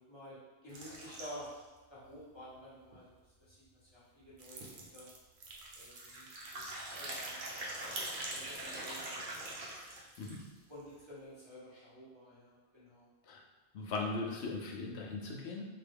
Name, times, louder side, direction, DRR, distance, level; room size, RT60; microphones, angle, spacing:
voice 1, 0.0-1.5 1.9-3.0 3.4-4.6 4.9-5.1 5.7-6.6 7.0-9.3 10.7-13.1, equal, 25° left, -9 dB, 1.1 m, -51 dB
sound 1, 0.7-1.6 2.1-2.2 2.4-2.5 2.9-3.0 4.2-4.3 4.6-4.9 5.9-10.6, right 1 dB, 50° right, 0.8 m, -43 dB
sound 2, 4.4-9.4, right 3 dB, 75° right, 0.9 m, -51 dB
voice 2, 13.7-15.6, left 3 dB, 70° left, 0 dB, 0.9 m, -38 dB
3.8 x 2.2 x 3.4 m, 1.2 s
omnidirectional pair, 1.1 m